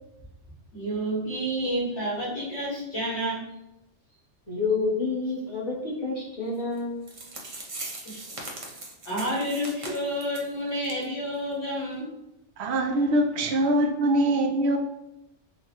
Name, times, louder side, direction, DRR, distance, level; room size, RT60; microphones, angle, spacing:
voice 1, 0.7-3.4 8.0-8.2 9.1-12.1, equal, 65° left, -7 dB, 1.8 m, -29 dB
voice 2, 4.5-7.0, left 4 dB, 30° left, -5 dB, 0.9 m, -28 dB
sound 1, 6.8-6.9 7.1-10.5 10.8-11.0 11.3-11.4 11.9-12.0, right 2 dB, 35° right, 0.6 m, -39 dB
voice 3, 12.6-14.8, right 1 dB, 65° right, 3 dB, 0.8 m, -23 dB
5.7 x 2.2 x 2.9 m, 0.89 s
omnidirectional pair, 1.2 m